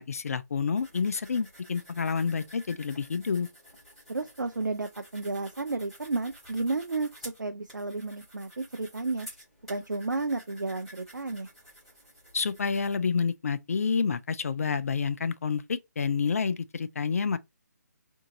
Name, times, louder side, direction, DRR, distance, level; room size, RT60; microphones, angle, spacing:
voice 1, 0.0-3.5 12.3-17.4, left 5 dB, 50° left, 0.3 m, -29 dB
sound 1, 0.7-13.0, equal, ahead, 1.9 m, -51 dB
voice 2, 4.1-9.3 9.7-11.5, right 3 dB, 85° right, 0.4 m, -32 dB
3.8 x 2.7 x 2.6 m
figure-of-eight pair, 145°, 10 cm